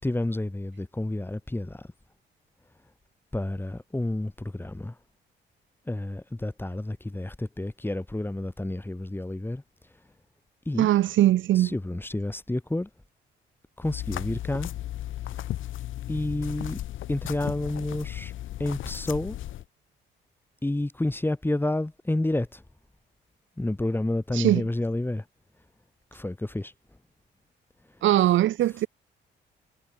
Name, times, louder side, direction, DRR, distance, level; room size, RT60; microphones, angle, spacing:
voice 1, 0.0-1.9 3.3-4.9 5.9-9.6 10.7-10.9 11.6-12.9 13.8-14.7 16.1-16.8 17.1-18.3 18.6-19.4 20.6-22.6 23.6-25.2 26.1-26.7, left 1 dB, 10° left, 3.7 m, -30 dB
voice 2, 10.8-11.7 24.3-24.6 28.0-28.9, right 13 dB, 75° right, 1.2 m, -21 dB
sound 1, 13.8-19.6, left 13 dB, 80° left, 3.5 m, -35 dB
cardioid pair, 90°, 20 cm